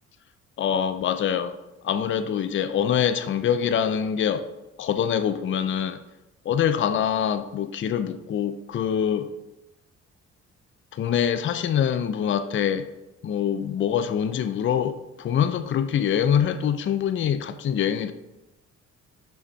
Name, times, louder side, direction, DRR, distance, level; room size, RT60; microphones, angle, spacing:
voice 1, 0.6-1.6 1.8-4.5 4.8-6.0 6.4-9.3 10.9-12.9 13.2-18.1, left 8 dB, 40° left, 11 dB, 0.5 m, -24 dB
5.7 x 5.6 x 4.0 m, 1.0 s
cardioid pair, 90°, 30 cm